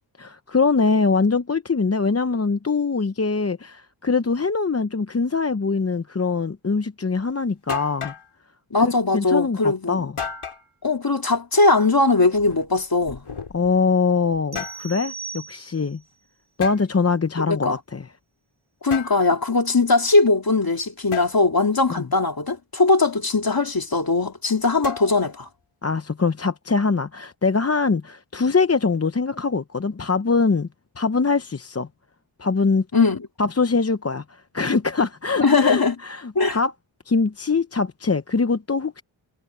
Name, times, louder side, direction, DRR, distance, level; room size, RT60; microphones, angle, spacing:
voice 1, 0.2-8.1 8.8-10.1 13.5-16.0 16.6-18.1 19.0-19.2 21.9-22.0 25.8-30.7 31.0-31.9 32.4-32.8 33.4-36.7 37.1-39.0, left 4 dB, 30° left, 0.7 m, -23 dB
sound 1, 7.2-7.3 7.7-8.3 10.2-10.7 12.3-13.8 14.3-14.9 16.6-16.8 18.9-19.2 21.1-21.3 24.8-25.4, left 7 dB, 85° left, 4.0 m, -33 dB
voice 2, 8.7-10.1 10.8-13.2 17.5-17.8 18.8-25.5 32.9-33.3 35.4-35.9 36.3-36.6, left 3 dB, 45° left, 3.1 m, -20 dB
sound 2, 14.5-16.0, right 5 dB, 35° right, 3.4 m, -38 dB
wide cardioid pair, 80°, 48 cm